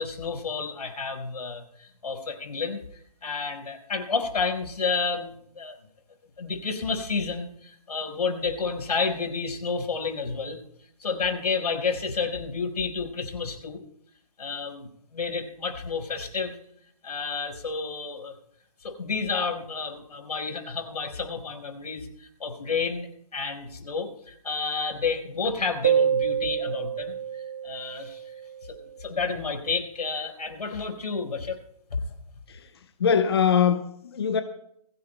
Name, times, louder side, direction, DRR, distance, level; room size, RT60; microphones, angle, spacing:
voice 1, 0.0-5.8 6.4-10.6 11.0-13.8 14.4-16.5 17.0-18.3 18.8-28.4 28.6-31.6 31.9-32.1, left 4 dB, 85° left, 4.8 m, -30 dB
sound 1, 25.8-29.1, right 8 dB, 15° right, 0.6 m, -27 dB
voice 2, 33.0-34.4, left 7 dB, 40° left, 0.9 m, -22 dB
22.0 x 16.5 x 2.3 m
hypercardioid pair, 175°, 20 cm